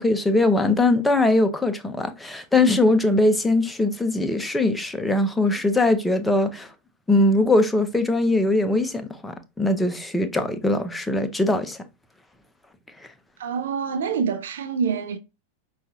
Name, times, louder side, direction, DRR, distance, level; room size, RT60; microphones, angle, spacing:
voice 1, 0.0-6.7 7.1-11.8 13.0-13.1, left 2 dB, 5° left, 0.6 m, -21 dB
voice 2, 13.4-15.2, right 6 dB, 60° right, 0.5 m, -26 dB
5.6 x 2.4 x 2.7 m
figure-of-eight pair, 90°, 0 cm